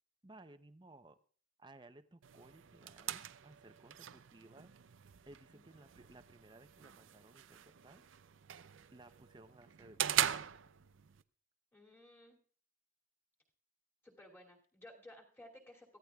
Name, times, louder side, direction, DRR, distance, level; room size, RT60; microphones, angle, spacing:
voice 1, 0.2-1.2 1.6-4.7 5.3-8.0 8.9-10.5, right 2 dB, 25° right, 10 dB, 0.6 m, -59 dB
sound 1, 2.2-11.2, right 11 dB, 80° right, 0.5 m, -41 dB
voice 2, 11.7-12.4 14.0-16.0, left 1 dB, 10° left, -1 dB, 2.6 m, -57 dB
24.0 x 15.5 x 2.3 m, 0.44 s
head